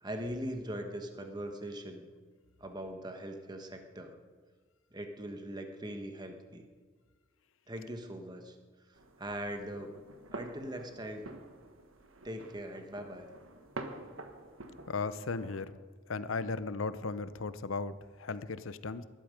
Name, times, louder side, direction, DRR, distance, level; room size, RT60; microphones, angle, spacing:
voice 1, 0.0-2.1 2.6-4.2 4.9-6.7 7.7-8.6 9.2-10.0 10.3-11.3 12.2-13.3, right 1 dB, 20° right, 5 dB, 1.3 m, -41 dB
sound 1, 8.9-15.7, right 2 dB, 80° right, 1.4 m, -48 dB
voice 2, 14.9-15.8 16.1-19.0, left 4 dB, 75° left, 14 dB, 0.7 m, -36 dB
20.0 x 12.0 x 5.2 m, 1.5 s
head